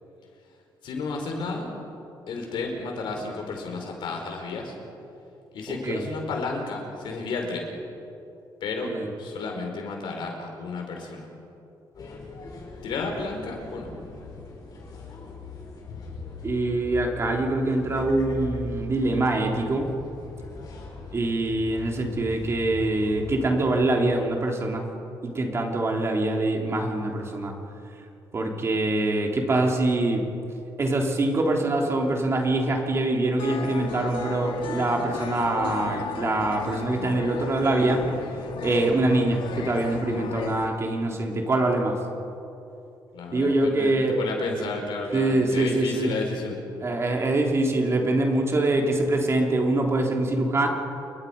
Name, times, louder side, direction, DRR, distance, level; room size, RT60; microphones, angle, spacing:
voice 1, 0.8-1.7 2.3-4.7 5.5-7.7 8.6-11.3 12.8-13.9 43.1-46.6, left 3 dB, 75° left, 2 dB, 5.0 m, -32 dB
voice 2, 5.7-6.0 8.8-9.1 16.4-19.9 21.1-24.9 25.2-27.5 28.3-30.2 30.8-38.1 38.6-42.0 43.3-44.2 45.1-46.2 46.8-50.7, right 2 dB, 35° right, 1 dB, 3.3 m, -24 dB
sound 1, 11.9-23.7, left 2 dB, 50° left, 6.8 m, -40 dB
sound 2, 33.4-40.7, left 6 dB, 90° left, 1.8 m, -35 dB
29.0 x 22.0 x 5.4 m, 2.7 s
cardioid pair, 125°, 8 cm